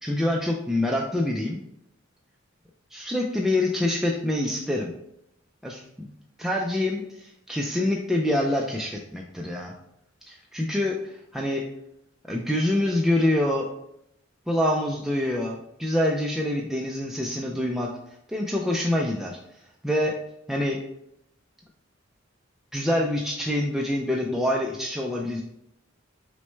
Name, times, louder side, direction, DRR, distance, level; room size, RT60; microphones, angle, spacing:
voice 1, 0.0-1.6 2.9-4.9 5.6-6.1 6.4-9.7 10.3-11.6 12.3-13.7 14.5-17.9 18.3-19.4 19.8-20.2 20.5-20.8 22.7-25.4, left 1 dB, ahead, -2 dB, 0.3 m, -26 dB
6.1 x 2.1 x 3.2 m, 0.79 s
head